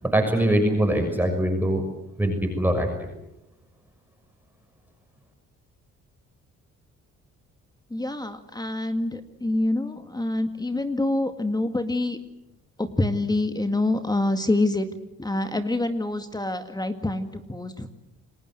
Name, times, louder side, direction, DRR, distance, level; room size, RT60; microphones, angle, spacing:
voice 1, 0.0-1.8 2.2-3.1, right 1 dB, 5° right, 3 dB, 6.4 m, -23 dB
voice 2, 7.9-12.2 12.8-14.9 15.2-17.9, left 2 dB, 15° left, 7 dB, 2.0 m, -26 dB
29.5 x 20.5 x 7.9 m, 0.88 s
cardioid pair, 90°, 30 cm